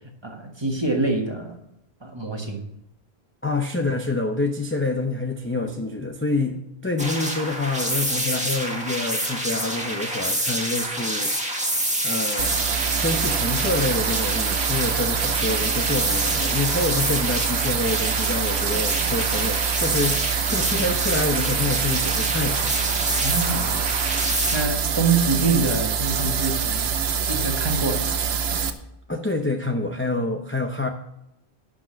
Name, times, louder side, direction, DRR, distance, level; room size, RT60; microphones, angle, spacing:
voice 1, 0.2-1.6 2.0-2.7 23.2-23.9 24.5-26.9 27.3-28.2, right 3 dB, 25° right, 3 dB, 1.5 m, -25 dB
voice 2, 3.4-11.3 12.0-12.5 13.0-20.2 20.5-22.7 29.1-30.9, left 2 dB, 15° left, 3 dB, 0.5 m, -27 dB
sound 1, 7.0-24.6, right 1 dB, 5° right, 1.6 m, -28 dB
sound 2, 12.4-28.7, right 7 dB, 75° right, 1.0 m, -25 dB
11.5 x 5.3 x 6.3 m, 0.80 s
omnidirectional pair, 1.1 m